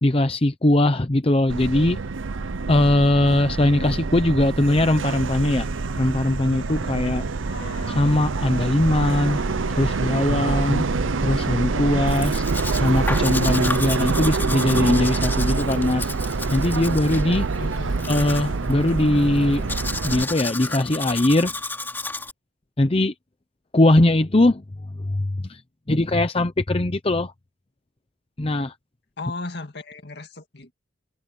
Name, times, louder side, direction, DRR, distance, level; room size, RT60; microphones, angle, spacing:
voice 1, 0.0-2.0 2.7-5.7 5.9-7.2 7.9-9.4 9.7-10.8 11.2-12.4 12.7-16.1 16.5-17.5 18.1-19.6 20.0-21.5 22.8-23.1 23.7-24.6 25.0-25.6 25.9-27.3 28.4-28.7, left 1 dB, 30° left, 0.7 m, -20 dB
Subway metro underground, 1.5-20.2, right 4 dB, 85° right, 0.7 m, -26 dB
sound 1, 6.3-21.7, left 2 dB, 85° left, 1.8 m, -44 dB
Domestic sounds home sounds, 12.1-22.3, left 3 dB, 10° left, 3.0 m, -33 dB
voice 2, 17.6-18.0 29.2-30.7, left 3 dB, 60° left, 2.2 m, -35 dB
head